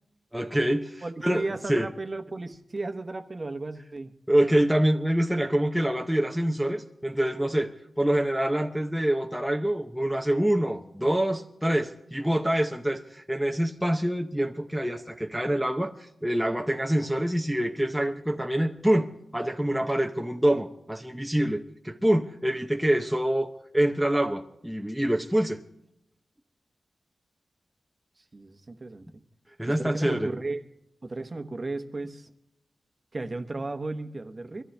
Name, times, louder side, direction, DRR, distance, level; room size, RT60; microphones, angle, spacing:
voice 1, 0.3-1.9 4.3-25.6 29.6-30.3, right 1 dB, ahead, 0.7 m, -26 dB
voice 2, 1.0-4.1 28.3-29.1 29.6-30.6 31.0-32.3 33.1-34.6, right 2 dB, 30° right, 1.0 m, -34 dB
23.0 x 14.0 x 3.4 m
wide cardioid pair, 150°, 0 cm